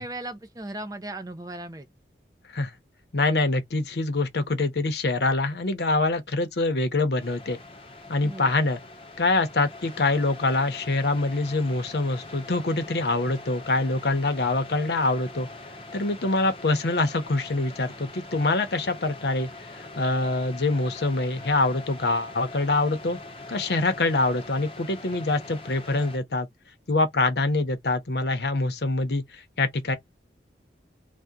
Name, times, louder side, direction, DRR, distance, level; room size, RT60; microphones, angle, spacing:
voice 1, 0.0-1.9 8.2-8.5, right 2 dB, 20° right, 0.4 m, -37 dB
voice 2, 3.1-7.6 8.1-8.8 9.2-15.5 15.9-23.2 23.5-26.5 26.9-30.0, left 2 dB, 70° left, 0.7 m, -25 dB
sound 1, 7.2-26.2, left 2 dB, 30° left, 0.6 m, -43 dB
2.8 x 2.2 x 3.6 m
head